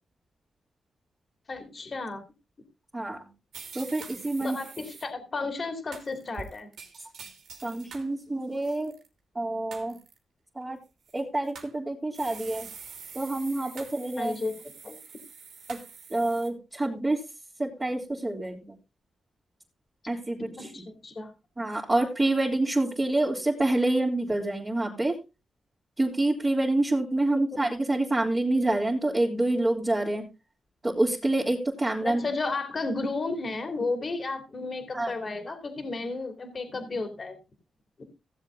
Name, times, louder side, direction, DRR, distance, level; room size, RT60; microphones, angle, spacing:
voice 1, 1.5-2.2 4.4-6.7 14.2-14.5 14.8-15.0 20.6-21.3 27.3-27.4 32.0-37.4, left 3 dB, 45° left, 8 dB, 2.8 m, -33 dB
voice 2, 2.9-3.3 3.7-4.6 7.6-8.9 9.3-10.0 10.5-10.8 11.1-12.7 13.1-14.4 15.7-15.8 16.1-17.2 17.6-18.7 20.1-20.5 21.6-25.2 26.0-30.3 30.8-32.2 34.9-35.2, right 2 dB, 25° right, -4 dB, 3.2 m, -27 dB
sound 1, 3.5-5.0 5.9-8.1 8.5-9.1 9.7-10.2 11.1-11.7 12.1-16.5, right 5 dB, 85° right, 2.8 m, -45 dB
16.0 x 7.5 x 3.8 m, 0.27 s
cardioid pair, 80°, 0 cm